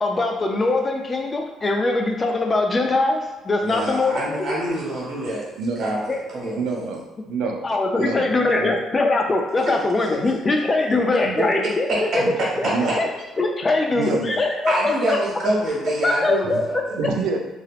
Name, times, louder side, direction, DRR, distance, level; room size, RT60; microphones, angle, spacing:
voice 1, 0.0-4.5 6.1-6.2 7.6-11.9 12.1-12.2 12.6-12.7 12.9-13.1 13.4-15.2 16.0-16.8, left 2 dB, 25° left, 2 dB, 0.4 m, -22 dB
voice 2, 3.6-5.5 5.8-6.0 6.3-6.9 11.9-12.0 12.4-13.0 14.7-16.9, right 1 dB, 55° right, -4 dB, 1.0 m, -26 dB
voice 3, 6.6-7.6 7.9-8.8 10.2-10.3 11.2-11.4 12.2-12.4 12.6-12.9 13.9-14.4 16.4-16.6 16.9-17.4, right 4 dB, 85° right, 2 dB, 0.4 m, -27 dB
2.7 x 2.0 x 2.4 m, 1.1 s
cardioid pair, 105°, 0 cm